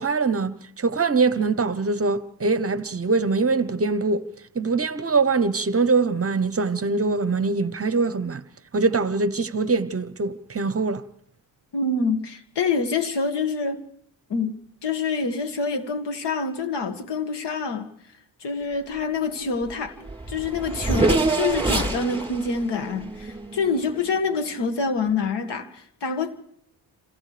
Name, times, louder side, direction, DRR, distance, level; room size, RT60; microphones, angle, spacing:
voice 1, 0.0-4.2 4.5-8.4 8.7-11.0, right 4 dB, 35° right, 1.0 m, -23 dB
voice 2, 11.7-13.8 14.3-17.9 18.4-26.4, left 4 dB, 70° left, 2.2 m, -26 dB
Race car auto racing / Accelerating revving vroom, 19.7-19.8 20.0-24.0, right 3 dB, 15° right, 4.2 m, -26 dB
29.5 x 27.0 x 3.4 m
cardioid pair, 80°, 43 cm